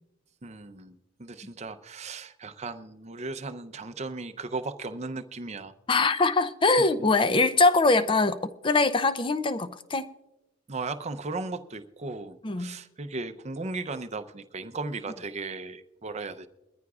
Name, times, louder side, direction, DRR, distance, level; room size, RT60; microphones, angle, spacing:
voice 1, 0.4-5.7 10.7-16.5, right 3 dB, 30° right, 0.6 m, -36 dB
voice 2, 5.9-10.1 12.4-12.8, left 3 dB, 25° left, 0.5 m, -23 dB
22.0 x 14.0 x 2.4 m
head